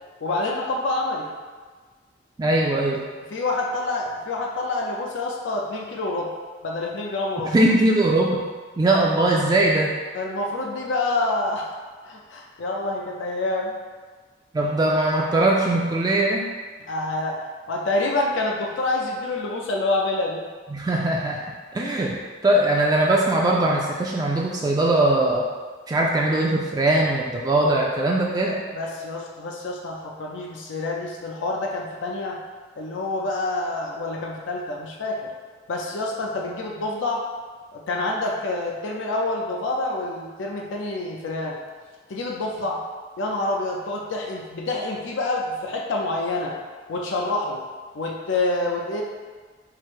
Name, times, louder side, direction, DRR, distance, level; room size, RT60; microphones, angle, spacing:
voice 1, 0.2-1.3 3.3-6.3 6.6-7.5 10.1-11.7 12.0-13.7 16.9-17.4 17.7-20.4 22.0-22.1 28.5-32.4 32.8-35.3 35.7-37.2 37.7-41.6 42.1-42.8 43.2-46.6 46.9-47.6 47.9-49.0, left 2 dB, 85° left, -1 dB, 0.5 m, -27 dB
voice 2, 2.4-3.0 7.4-8.5 8.8-10.0 14.5-16.5 20.7-22.2 22.4-25.5 25.9-28.6, right 1 dB, 20° right, -2 dB, 0.3 m, -21 dB
4.7 x 2.0 x 4.4 m, 1.5 s
head